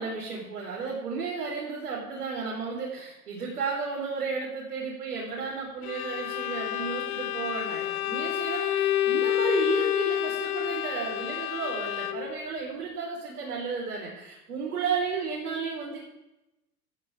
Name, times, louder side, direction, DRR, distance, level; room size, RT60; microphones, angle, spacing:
voice 1, 0.0-16.0, right 5 dB, 75° right, -5 dB, 5.3 m, -33 dB
Bowed string instrument, 5.8-12.4, left 12 dB, 70° left, 0.9 m, -29 dB
17.0 x 14.0 x 3.8 m, 0.93 s
hypercardioid pair, 90°, 45 cm